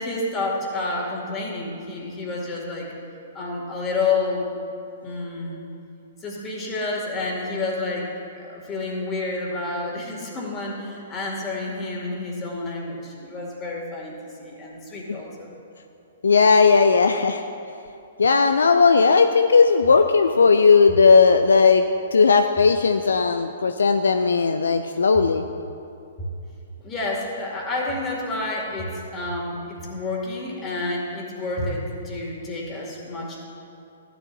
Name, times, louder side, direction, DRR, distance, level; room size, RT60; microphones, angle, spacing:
voice 1, 0.0-2.9 3.3-4.5 5.0-5.6 6.2-8.1 8.3-14.1 14.4-15.5 26.8-33.4, left 3 dB, 20° left, -2 dB, 2.3 m, -29 dB
voice 2, 16.2-17.5 18.2-25.5, left 5 dB, 70° left, 8 dB, 0.4 m, -17 dB
14.5 x 11.0 x 2.7 m, 2.6 s
figure-of-eight pair, 115°, 0 cm